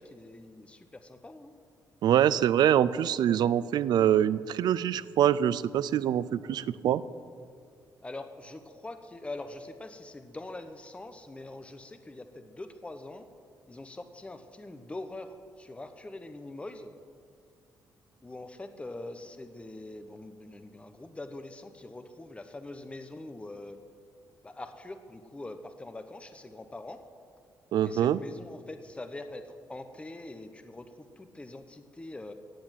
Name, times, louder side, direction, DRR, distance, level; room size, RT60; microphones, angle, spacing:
voice 1, 0.0-1.5 8.0-13.3 13.7-16.9 18.2-23.8 24.4-27.0 27.8-32.3, left 2 dB, 15° left, 8 dB, 1.0 m, -43 dB
voice 2, 2.0-7.0 27.7-28.2, right 10 dB, 75° right, 17 dB, 0.5 m, -24 dB
15.5 x 8.7 x 9.1 m, 2.2 s
cardioid pair, 95°, 7 cm